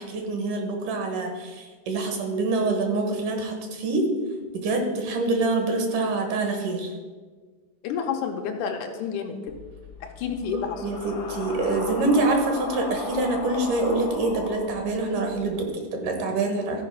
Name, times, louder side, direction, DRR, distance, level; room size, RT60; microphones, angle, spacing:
voice 1, 0.0-4.1 4.5-6.9 10.5-16.8, right 2 dB, 75° right, 3 dB, 2.8 m, -26 dB
voice 2, 7.8-9.6 10.0-10.9, left 7 dB, 75° left, 3 dB, 2.1 m, -30 dB
sound 1, 9.5-15.6, left 3 dB, 50° left, 1.3 m, -37 dB
14.0 x 5.1 x 5.4 m, 1.4 s
omnidirectional pair, 3.8 m